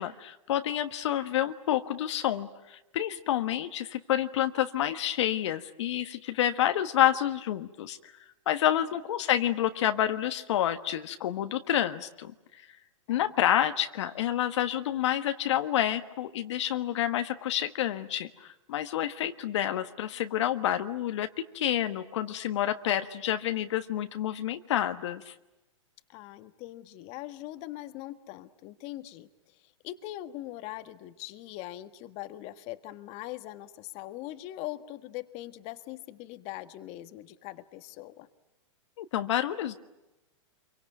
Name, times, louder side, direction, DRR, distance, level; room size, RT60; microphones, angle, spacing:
voice 1, 0.0-8.0 8.5-12.3 12.6-12.7 13.1-25.3 39.0-39.8, left 11 dB, 65° left, 8 dB, 1.4 m, -29 dB
voice 2, 26.1-38.3, left 15 dB, 40° left, 10 dB, 1.6 m, -41 dB
27.0 x 24.0 x 9.2 m, 1.0 s
hypercardioid pair, 125°, 16 cm